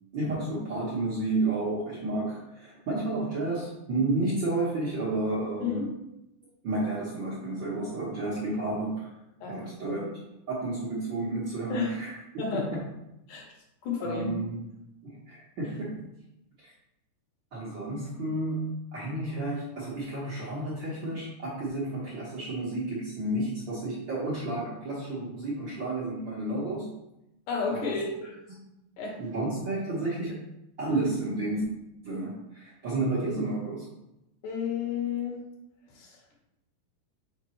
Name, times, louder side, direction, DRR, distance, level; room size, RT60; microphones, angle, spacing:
voice 1, 0.1-5.8 6.6-9.1 9.5-10.0 10.5-12.1 12.5-12.8 14.0-14.6 15.0-16.1 16.6-16.7 17.5-26.9 27.7-28.0 29.2-30.4 30.8-31.6 32.0-33.9, right 2 dB, 55° right, -7 dB, 1.4 m, -31 dB
voice 2, 9.4-10.1 11.7-11.9 12.4-12.8 13.3-13.5 13.8-14.4 27.5-28.4 29.0-29.2 34.4-35.5 35.9-36.4, left 5 dB, 85° left, -1 dB, 2.9 m, -32 dB
5.9 x 5.2 x 3.1 m, 0.88 s
omnidirectional pair, 3.6 m